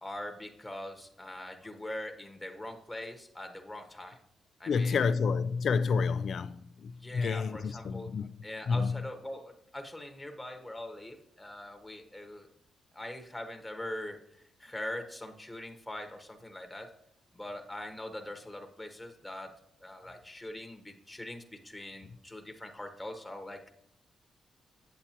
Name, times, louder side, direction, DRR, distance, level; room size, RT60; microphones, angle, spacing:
voice 1, 0.0-4.2 4.6-5.1 7.0-8.1 8.4-12.5 12.9-16.9 17.3-23.7, left 1 dB, 10° left, 1.1 m, -42 dB
voice 2, 4.7-8.3 8.7-8.9, left 5 dB, 60° left, 0.4 m, -29 dB
8.2 x 8.0 x 2.9 m
cardioid pair, 85°, 0 cm